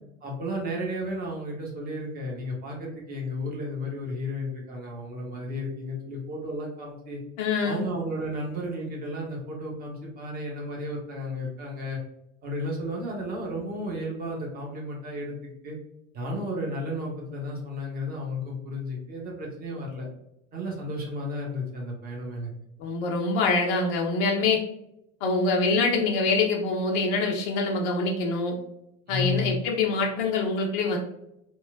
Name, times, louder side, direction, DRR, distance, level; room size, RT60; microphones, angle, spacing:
voice 1, 0.2-7.2 7.6-12.0 12.4-15.8 16.1-20.0 20.5-22.5 29.1-29.5, left 1 dB, 20° right, -2 dB, 0.8 m, -33 dB
voice 2, 7.4-7.8 22.8-24.6 25.2-28.6 29.1-31.0, left 3 dB, 35° left, -1 dB, 0.4 m, -25 dB
2.9 x 2.1 x 2.4 m, 0.80 s
figure-of-eight pair, 85°, 43 cm